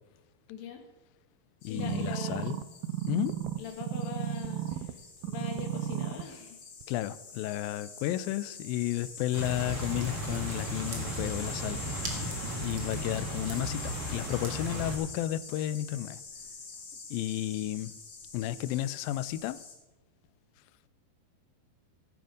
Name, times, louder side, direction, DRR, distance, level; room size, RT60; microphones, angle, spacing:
voice 1, 0.5-0.8 1.7-2.7 3.6-5.0 5.2-6.6, left 7 dB, 65° left, 3 dB, 3.2 m, -42 dB
voice 2, 1.6-2.6 3.1-3.4 6.9-11.8 12.1-12.2 12.6-16.2 17.1-18.0 18.3-19.6, left 14 dB, 85° left, 15 dB, 2.1 m, -32 dB
sound 1, 1.6-19.7, left 5 dB, 45° left, 3.0 m, -45 dB
sound 2, 1.8-4.9 5.2-6.2 6.8-6.9, right 11 dB, 85° right, 1.9 m, -34 dB
sound 3, 9.3-15.0, right 1 dB, 45° right, 2.0 m, -36 dB
15.5 x 9.2 x 5.1 m, 1.0 s
omnidirectional pair, 4.6 m